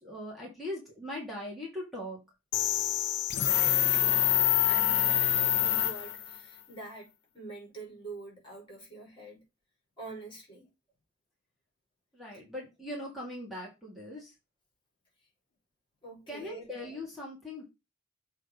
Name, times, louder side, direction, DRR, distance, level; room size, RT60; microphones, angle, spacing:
voice 1, 0.0-2.2 12.1-14.3 16.3-17.6, left 1 dB, ahead, 2.4 m, -40 dB
sound 1, 2.5-6.4, left 12 dB, 65° left, 0.7 m, -26 dB
voice 2, 3.4-7.1 7.3-9.4 10.0-10.7 16.0-16.7, right 2 dB, 25° left, 5.0 m, -46 dB
7.4 x 3.8 x 5.1 m
head